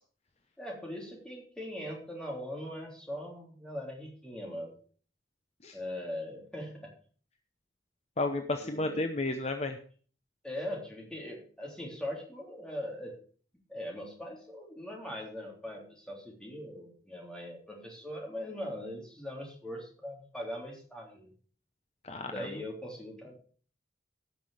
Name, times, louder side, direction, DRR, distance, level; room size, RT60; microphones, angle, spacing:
voice 1, 0.6-4.8 5.7-6.9 8.6-9.0 10.4-13.1 13.7-21.3 22.2-23.3, left 1 dB, 5° left, -2 dB, 3.4 m, -40 dB
voice 2, 8.2-9.8 22.0-22.5, left 2 dB, 35° left, 6 dB, 0.8 m, -32 dB
17.5 x 6.0 x 4.9 m, 0.43 s
head